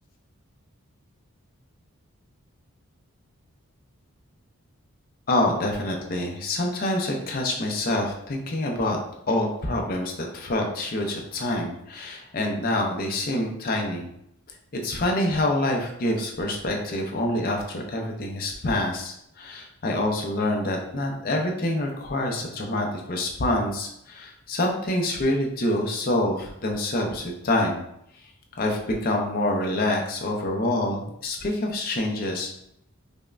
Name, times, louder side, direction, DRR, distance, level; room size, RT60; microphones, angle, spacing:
voice 1, 5.3-9.0 9.3-14.1 14.7-27.8 28.5-32.6, left 1 dB, 40° left, 1 dB, 0.5 m, -26 dB
5.2 x 2.2 x 2.5 m, 0.76 s
head